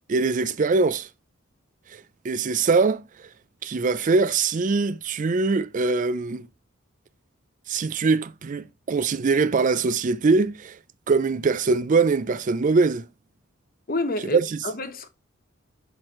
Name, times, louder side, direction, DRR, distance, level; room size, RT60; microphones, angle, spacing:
voice 1, 0.1-1.1 2.2-3.0 3.6-6.5 7.7-10.8 11.1-13.0 14.2-14.7, right 4 dB, 40° right, 0.4 m, -22 dB
voice 2, 13.9-15.1, left 2 dB, 45° left, 1.0 m, -29 dB
6.2 x 6.0 x 3.1 m
head